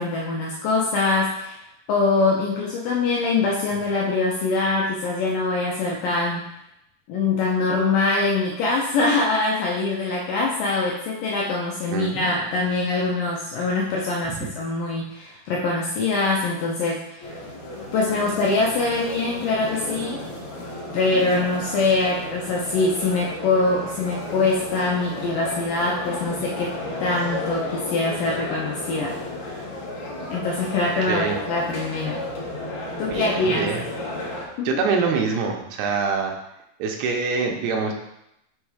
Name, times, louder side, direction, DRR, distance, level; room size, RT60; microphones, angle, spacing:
voice 1, 0.0-1.6 1.9-6.5 7.1-17.4 17.9-20.2 20.9-26.8 27.0-29.6 30.3-32.2 33.0-33.7 34.6-34.7, left 3 dB, 80° left, -2 dB, 1.9 m, -23 dB
voice 2, 11.9-12.3 14.3-14.5 31.0-31.4 33.1-33.8 34.7-36.3 36.8-37.9, right 4 dB, 90° right, 3 dB, 2.6 m, -25 dB
sound 1, 17.2-34.5, left 1 dB, 60° left, 2.0 m, -33 dB
6.2 x 3.3 x 4.8 m, 0.83 s
omnidirectional pair, 4.5 m